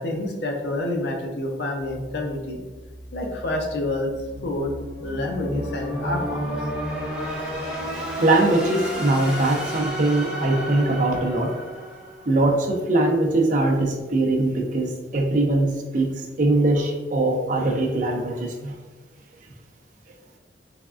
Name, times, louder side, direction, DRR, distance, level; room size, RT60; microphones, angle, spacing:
voice 1, 0.0-2.6 3.1-4.1 4.4-4.7 5.0-6.4, left 1 dB, 65° left, 2 dB, 0.5 m, -28 dB
sound 1, 1.8-12.8, equal, 5° right, 0.9 m, -32 dB
voice 2, 8.2-11.5 12.3-18.7, right 2 dB, 45° right, 0 dB, 0.5 m, -21 dB
3.4 x 3.3 x 2.4 m, 1.3 s
head